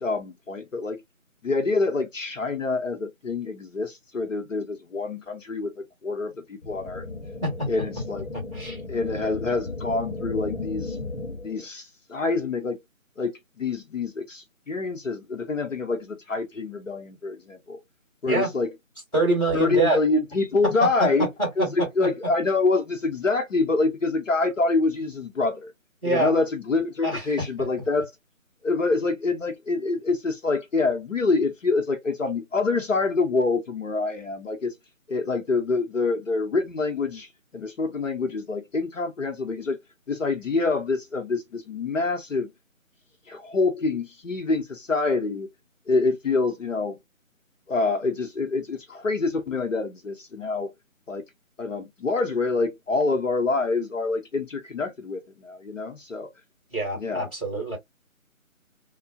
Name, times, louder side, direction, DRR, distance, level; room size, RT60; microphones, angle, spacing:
voice 1, 0.0-1.0 1.4-7.0 7.7-8.3 8.9-11.0 11.4-12.8 13.2-17.8 18.2-18.7 19.2-21.3 21.6-25.7 26.0-28.1 28.6-34.7 35.1-39.8 40.1-42.5 43.3-45.5 45.9-47.0 47.7-50.7 51.1-51.2 51.6-56.3 56.9-57.3, left 3 dB, 65° left, 0.8 m, -26 dB
sound 1, 6.6-11.6, left 3 dB, 40° left, 1.1 m, -35 dB
voice 2, 8.3-8.8 18.3-18.5 19.1-20.0 20.8-21.1 21.4-21.9 26.0-26.3 27.0-27.4 56.7-57.8, right 2 dB, 5° left, 1.9 m, -25 dB
3.2 x 2.1 x 2.5 m
figure-of-eight pair, 160°, 41 cm